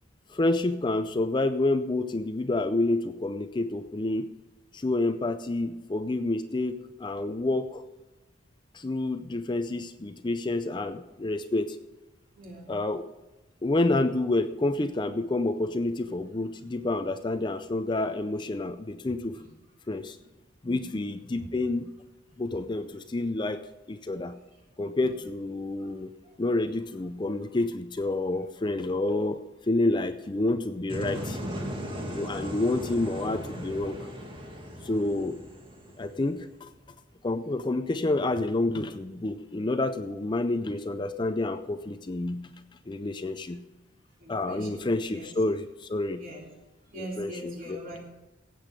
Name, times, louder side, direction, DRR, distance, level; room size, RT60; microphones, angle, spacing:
voice 1, 0.3-4.4 4.7-7.8 8.7-11.8 12.7-13.0 13.6-19.4 19.9-20.2 20.6-21.9 22.4-24.4 24.8-26.1 26.4-31.4 32.1-34.0 34.8-35.4 36.0-36.7 37.2-42.5 42.9-43.7 44.3-46.2 47.0-47.8, left 2 dB, 25° left, 10 dB, 0.5 m, -29 dB
voice 2, 12.3-12.8 19.1-19.5 20.2-20.3 20.6-21.0 21.4-21.5 22.5-22.6 25.0-25.1 25.7-25.9 26.2-26.4 27.4-27.5 44.2-44.8 45.1-45.3 46.2-46.5 46.8-48.0, right 1 dB, 45° right, -1 dB, 3.3 m, -43 dB
sound 1, 30.9-36.8, equal, 25° right, 1.7 m, -37 dB
17.0 x 7.8 x 5.1 m, 1.0 s
head